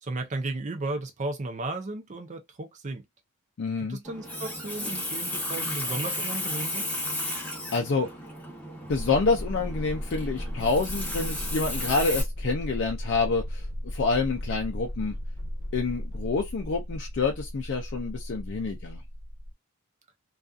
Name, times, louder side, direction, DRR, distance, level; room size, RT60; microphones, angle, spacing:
voice 1, 0.0-3.0 3.9-6.9, right 2 dB, 35° right, 0.5 m, -34 dB
voice 2, 3.6-4.0 7.7-8.1 8.9-15.1 15.7-19.0, left 4 dB, 55° left, 0.4 m, -27 dB
Water tap faucet, 4.0-12.2, left 1 dB, 5° left, 0.8 m, -34 dB
sound 1, 8.9-19.5, equal, 70° right, 1.0 m, -35 dB
2.6 x 2.3 x 2.3 m
head